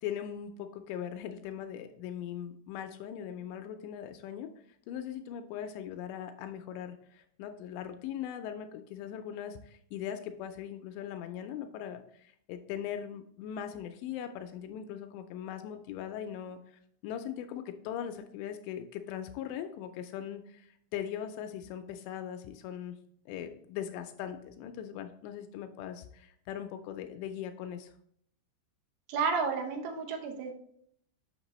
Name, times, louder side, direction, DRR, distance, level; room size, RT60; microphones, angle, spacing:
voice 1, 0.0-4.5 4.9-23.0 23.3-27.9, left 9 dB, 85° left, 7 dB, 2.6 m, -40 dB
voice 2, 29.1-30.5, right 5 dB, 80° right, 3 dB, 3.2 m, -31 dB
7.2 x 6.0 x 3.0 m, 0.68 s
omnidirectional pair, 5.5 m